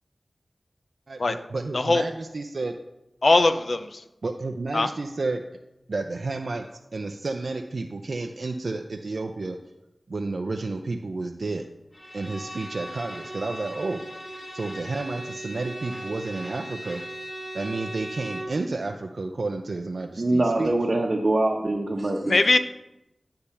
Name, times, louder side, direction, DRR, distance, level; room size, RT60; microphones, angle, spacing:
voice 1, 1.1-2.7 4.2-5.4 5.9-6.6 6.9-9.6 10.1-11.6 12.1-14.0 14.5-17.0 17.5-20.7, right 3 dB, 70° right, 4 dB, 0.5 m, -31 dB
voice 2, 3.2-4.0 4.7-4.9 22.3-22.6, left 2 dB, 70° left, 9 dB, 0.5 m, -20 dB
Bowed string instrument, 11.9-18.6, right 1 dB, 40° left, 2.0 m, -38 dB
voice 3, 20.2-22.4, right 2 dB, 50° right, -1 dB, 0.9 m, -24 dB
9.8 x 3.4 x 6.9 m, 0.91 s
wide cardioid pair, 50°, 0 cm